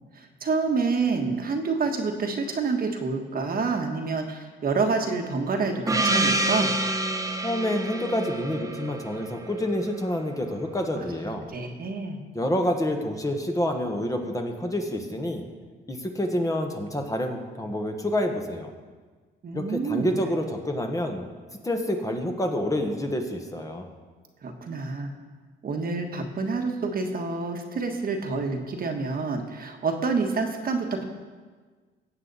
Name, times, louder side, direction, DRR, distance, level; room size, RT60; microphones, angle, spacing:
voice 1, 0.1-6.7 11.5-12.2 19.4-20.1 24.4-25.1 25.6-31.0, right 4 dB, 50° right, 4 dB, 1.3 m, -28 dB
Gong, 5.9-10.2, right 2 dB, 15° right, 0.9 m, -27 dB
voice 2, 7.4-11.5 12.3-15.4 15.9-18.7 19.5-21.3 21.6-23.9, left 1 dB, 15° left, 3 dB, 1.4 m, -28 dB
16.0 x 8.0 x 4.1 m, 1.4 s
cardioid pair, 90°, 20 cm